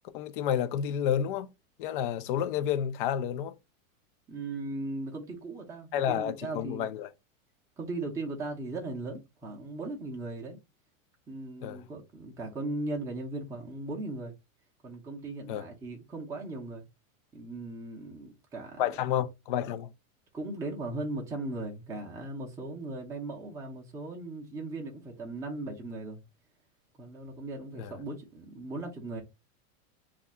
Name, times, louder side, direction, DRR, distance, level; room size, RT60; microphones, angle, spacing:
voice 1, 0.1-1.5 1.8-3.6 5.9-7.1 11.6-11.8 15.5-15.6 18.8-19.9 27.8-27.9, left 9 dB, 40° left, 0.4 m, -30 dB
voice 2, 4.3-6.9 7.8-10.6 11.3-14.4 14.8-16.9 17.3-18.8 20.3-26.2 27.0-29.2, right 2 dB, 10° right, 0.5 m, -38 dB
2.6 x 2.5 x 4.0 m
supercardioid pair, 155°, 41 cm